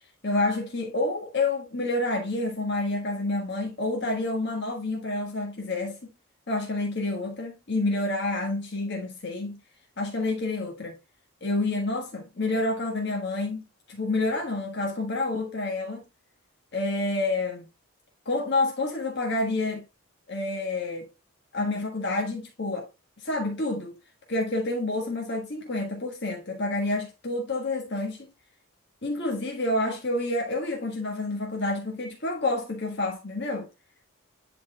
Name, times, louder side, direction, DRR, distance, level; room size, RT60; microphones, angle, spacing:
voice 1, 0.2-6.1 6.5-9.6 10.0-11.0 11.4-16.0 16.7-17.7 18.2-19.8 20.3-21.1 21.5-22.9 23.2-23.9 24.3-28.3 29.0-33.7, left 2 dB, 55° left, 1.4 m, -28 dB
11.0 x 4.2 x 2.2 m
head